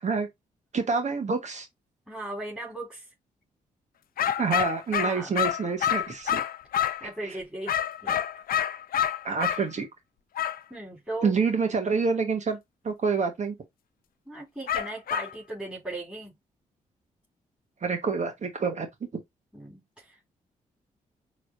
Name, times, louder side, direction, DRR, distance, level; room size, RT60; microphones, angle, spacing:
voice 1, 0.7-1.7 4.4-6.4 7.2-7.4 9.2-9.9 11.2-12.6 12.8-13.5 17.8-18.9 19.1-19.2, right 5 dB, 50° right, 1.3 m, -27 dB
voice 2, 2.1-3.1 5.0-5.3 6.8-8.2 10.7-11.4 14.3-16.3 19.5-20.3, right 2 dB, 5° right, 3.6 m, -38 dB
sound 1, 4.2-7.1 7.7-9.6 10.3-10.6 14.7-15.3, left 10 dB, 70° left, 0.6 m, -27 dB
6.0 x 3.2 x 2.6 m
supercardioid pair, 55°, 15 cm